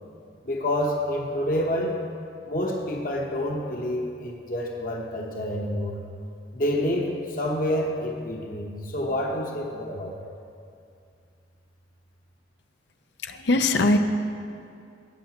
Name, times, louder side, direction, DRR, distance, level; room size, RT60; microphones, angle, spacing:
voice 1, 0.4-2.0 2.5-6.0 6.5-10.1, left 1 dB, 45° left, 0 dB, 1.0 m, -28 dB
voice 2, 13.2-14.0, left 2 dB, 70° left, 7 dB, 0.6 m, -21 dB
17.5 x 8.5 x 2.9 m, 2.5 s
head